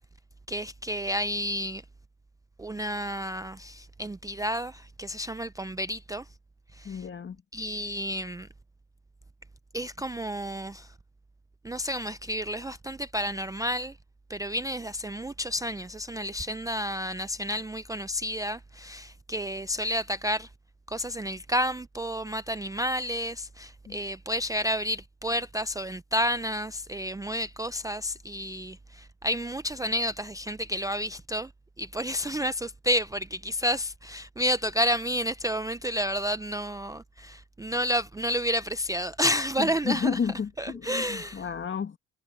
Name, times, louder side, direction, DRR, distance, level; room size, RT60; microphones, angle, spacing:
voice 1, 0.5-1.8 2.6-6.3 6.7-7.1 7.5-8.5 9.7-10.9 11.6-14.0 14.3-20.5 20.9-31.5 31.8-40.2 40.6-41.5, equal, 10° right, 0.5 m, -30 dB
voice 2, 6.8-7.4 23.9-24.0 39.6-42.0, left 6 dB, 40° left, 1.8 m, -31 dB
cardioid pair, 90°, 30 cm